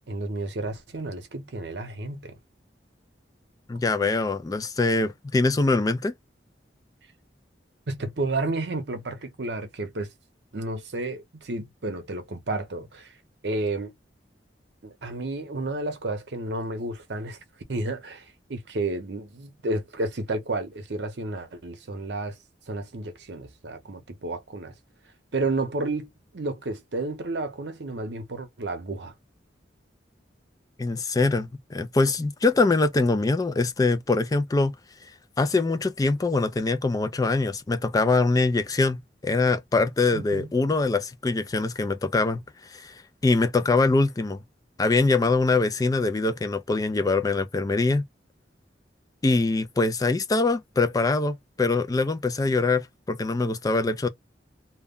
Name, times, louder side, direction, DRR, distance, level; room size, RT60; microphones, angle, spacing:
voice 1, 0.1-2.4 7.9-10.1 10.5-13.1 13.4-13.9 14.8-17.4 17.7-22.4 22.7-24.7 25.3-29.1 40.1-40.5, right 2 dB, 70° right, 0.8 m, -31 dB
voice 2, 3.7-6.1 30.8-34.7 35.4-39.0 39.2-42.4 42.7-42.9 43.2-44.4 44.8-48.0 49.2-54.1, left 3 dB, 20° left, 0.3 m, -23 dB
2.3 x 2.1 x 3.5 m
head